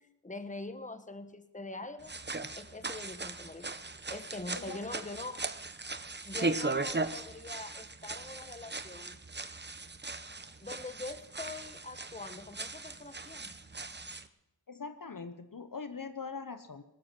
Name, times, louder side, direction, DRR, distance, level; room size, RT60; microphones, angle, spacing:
voice 1, 0.0-2.2 2.5-3.8 4.1-5.4 6.2-9.2 10.6-13.5, left 2 dB, 15° left, 10 dB, 1.2 m, -43 dB
sound 1, 2.0-14.3, right 3 dB, 25° right, 0.9 m, -38 dB
voice 2, 14.7-16.8, left 5 dB, 50° left, 10 dB, 1.0 m, -42 dB
18.5 x 13.0 x 6.0 m, 0.93 s
wide cardioid pair, 75°, 42 cm